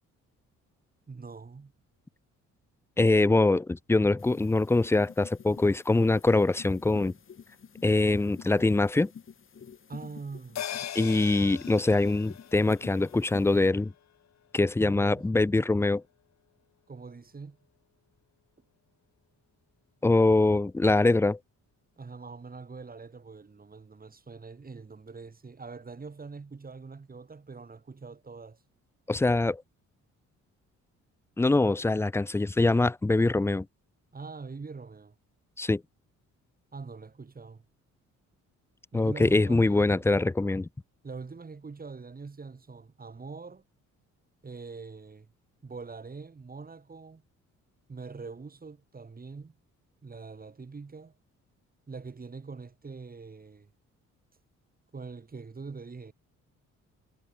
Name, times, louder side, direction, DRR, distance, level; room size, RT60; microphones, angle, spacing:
voice 1, 1.1-1.7 9.9-10.6 14.8-15.3 16.9-17.6 22.0-28.6 34.1-35.2 36.7-37.6 38.9-40.1 41.0-43.6 44.4-45.3 45.6-47.2 47.9-49.6 50.0-51.1 51.9-53.7 54.9-56.1, right 4 dB, 30° right, 5.9 m, -43 dB
voice 2, 3.0-7.1 7.8-9.1 10.9-13.9 14.5-16.0 20.0-21.4 29.1-29.6 31.4-33.7 35.6-35.8 38.9-40.7, left 2 dB, 10° left, 0.5 m, -23 dB
sound 1, 4.2-13.7, left 7 dB, 45° left, 3.2 m, -49 dB
sound 2, 10.6-15.3 15.6-15.7, left 10 dB, 65° left, 2.5 m, -42 dB
cardioid pair, 90°, 30 cm